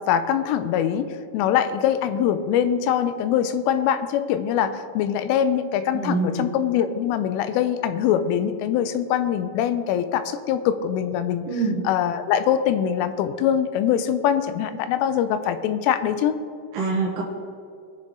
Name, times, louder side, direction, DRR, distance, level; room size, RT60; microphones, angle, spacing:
voice 1, 0.0-11.5 11.8-16.4, left 9 dB, 85° left, 11 dB, 3.2 m, -23 dB
voice 2, 5.9-6.5 11.4-11.8 16.7-17.2, right 4 dB, 70° right, -4 dB, 2.1 m, -25 dB
21.0 x 7.7 x 3.7 m, 2.4 s
omnidirectional pair, 5.7 m